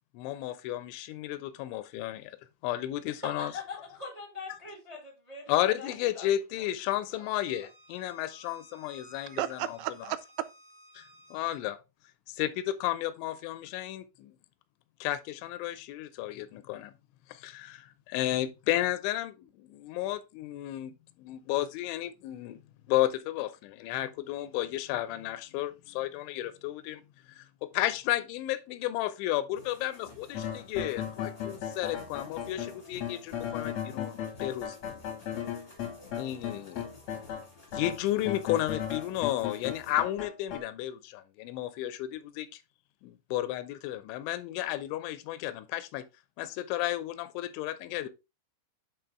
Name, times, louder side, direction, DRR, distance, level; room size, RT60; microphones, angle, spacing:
voice 1, 0.1-2.4 2.6-3.5 5.5-9.8 11.0-11.1 11.3-11.8 12.3-14.4 15.0-16.9 17.3-22.6 22.9-27.0 27.4-34.8 36.2-36.9 37.7-42.6 43.0-46.1 46.4-48.1, left 14 dB, 85° left, 3.0 m, -33 dB
voice 2, 3.1-7.3, left 3 dB, 30° right, 0.6 m, -43 dB
Bowed string instrument, 7.2-11.6, equal, 60° right, 4.5 m, -56 dB
voice 3, 9.3-10.5, right 13 dB, 85° right, 2.9 m, -34 dB
sound 1, 29.5-40.0, left 3 dB, 25° left, 1.1 m, -52 dB
sound 2, 30.3-37.4 37.7-40.6, left 9 dB, 70° left, 1.7 m, -36 dB
9.2 x 4.1 x 3.4 m
omnidirectional pair, 5.3 m